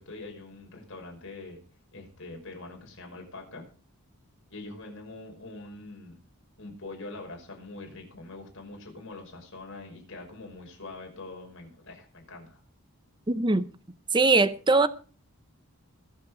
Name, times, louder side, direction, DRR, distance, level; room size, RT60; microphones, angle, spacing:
voice 1, 0.0-1.6 1.9-3.6 4.5-6.2 6.6-12.6, left 2 dB, 60° left, 5.6 m, -43 dB
voice 2, 13.3-13.7 14.1-14.9, right 3 dB, 20° right, 0.7 m, -21 dB
21.5 x 7.5 x 4.9 m
head